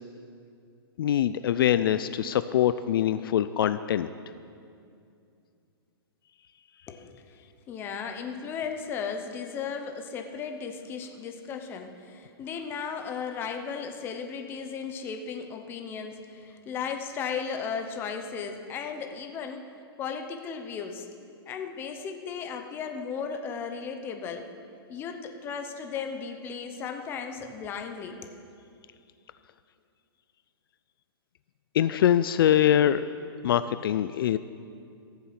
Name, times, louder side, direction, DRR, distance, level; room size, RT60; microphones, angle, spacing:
voice 1, 1.0-4.1 31.7-33.1 33.4-34.4, left 10 dB, 60° left, 13 dB, 0.4 m, -23 dB
voice 2, 6.9-7.2 7.7-19.7 20.0-21.1 21.5-24.5 24.9-28.4, left 6 dB, 15° left, 5 dB, 0.8 m, -35 dB
14.0 x 7.2 x 7.5 m, 2.4 s
hypercardioid pair, 160°, 13 cm